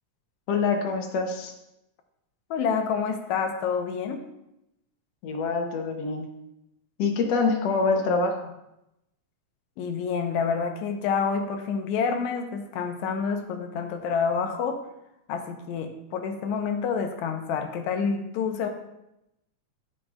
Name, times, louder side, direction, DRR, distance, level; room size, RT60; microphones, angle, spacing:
voice 1, 0.5-1.5 5.2-6.3 7.0-8.5, left 4 dB, 70° left, 3 dB, 1.9 m, -25 dB
voice 2, 2.5-4.2 9.8-14.8 15.3-18.7, left 6 dB, 90° left, 5 dB, 2.1 m, -28 dB
13.0 x 5.4 x 2.3 m, 0.87 s
omnidirectional pair, 3.3 m